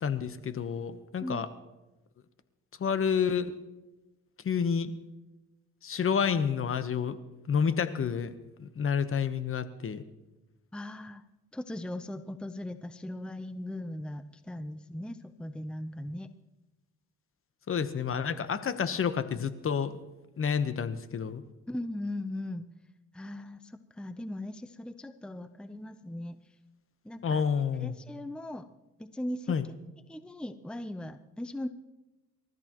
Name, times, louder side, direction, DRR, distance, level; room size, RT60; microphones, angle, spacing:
voice 1, 0.0-1.5 2.8-3.5 4.4-4.9 5.8-7.2 7.5-8.3 8.6-10.0 17.7-20.0 20.4-21.4 27.2-28.0 29.5-29.7, left 7 dB, 45° left, 11 dB, 1.1 m, -29 dB
voice 2, 10.7-11.2 11.5-16.3 21.7-22.6 23.1-26.4 27.0-27.4 27.8-28.7 29.0-29.5 30.1-31.7, left 1 dB, 5° left, 10 dB, 0.6 m, -38 dB
28.5 x 13.5 x 3.0 m, 1.0 s
cardioid pair, 90°, 30 cm